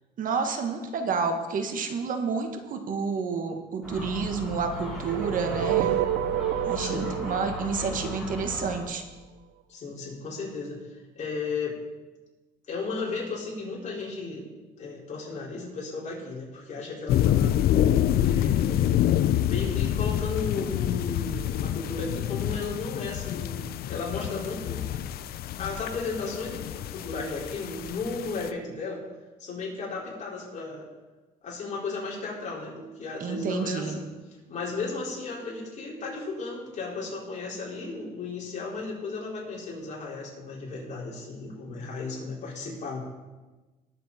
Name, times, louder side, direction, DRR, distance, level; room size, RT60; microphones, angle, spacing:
voice 1, 0.2-5.9 6.7-9.0 33.2-34.0, right 5 dB, 55° right, 6 dB, 1.4 m, -29 dB
Gull seagull, 3.8-8.9, left 3 dB, ahead, 4.5 m, -37 dB
sound 1, 4.8-8.9, right 13 dB, 85° right, 0.5 m, -29 dB
voice 2, 6.8-7.2 9.7-11.8 12.7-14.5 14.8-17.6 18.2-18.9 19.5-24.9 25.6-29.0 29.4-30.9 31.4-34.1 34.5-43.0, left 4 dB, 45° left, -4 dB, 4.7 m, -35 dB
sound 2, 17.1-28.5, left 11 dB, 65° left, 0.6 m, -27 dB
19.5 x 7.6 x 4.2 m, 1.2 s
cardioid pair, 110°, 17 cm